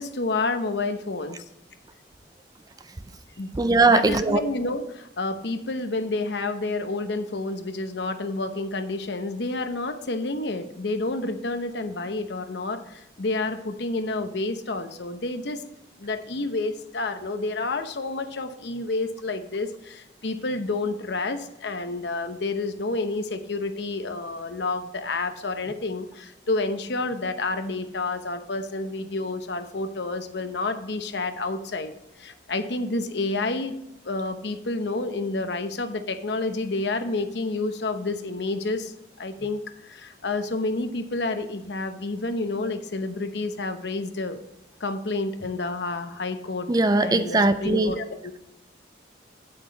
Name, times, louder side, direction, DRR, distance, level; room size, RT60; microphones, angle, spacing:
voice 1, 0.0-1.4 3.4-3.5 3.9-15.6 16.0-31.9 32.2-33.8 34.0-44.4 44.8-46.7 47.0-48.3, left 2 dB, 70° left, 8 dB, 0.8 m, -29 dB
voice 2, 3.6-4.4 46.7-47.9, right 3 dB, 20° right, 11 dB, 0.4 m, -20 dB
8.4 x 8.3 x 3.9 m, 0.87 s
head